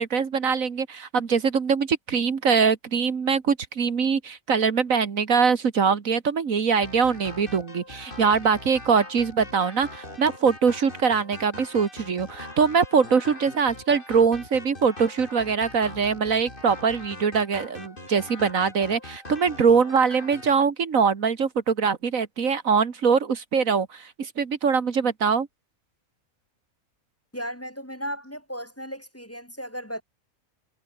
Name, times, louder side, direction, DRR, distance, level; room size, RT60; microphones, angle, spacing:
voice 1, 0.0-25.5, right 6 dB, 70° right, 2.0 m, -23 dB
sound 1, 6.8-20.5, left 1 dB, 35° left, 5.1 m, -42 dB
voice 2, 27.3-30.0, equal, 10° left, 2.8 m, -35 dB
omnidirectional pair, 1.5 m